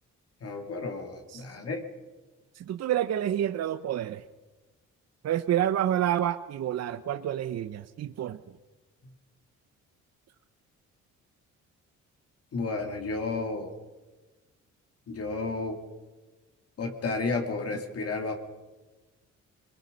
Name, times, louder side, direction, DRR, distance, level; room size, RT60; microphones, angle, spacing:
voice 1, 0.4-1.8 12.5-13.7 15.1-15.8 16.8-18.3, left 3 dB, 55° left, 3 dB, 2.6 m, -32 dB
voice 2, 2.5-4.2 5.2-8.4, right 11 dB, 60° right, 11 dB, 0.7 m, -28 dB
23.0 x 21.5 x 5.3 m, 1.2 s
cardioid pair, 90°, 30 cm